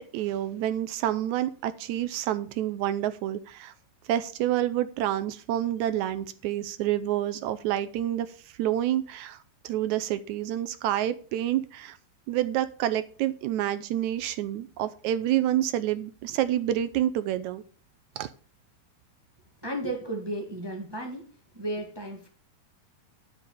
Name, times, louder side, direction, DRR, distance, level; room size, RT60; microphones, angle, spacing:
voice 1, 0.0-3.7 4.1-12.0 12.3-17.6 18.2-18.3, right 12 dB, 80° right, 12 dB, 1.7 m, -28 dB
voice 2, 19.6-22.3, right 1 dB, 25° right, 2 dB, 0.5 m, -34 dB
11.5 x 4.8 x 6.8 m, 0.40 s
omnidirectional pair, 3.8 m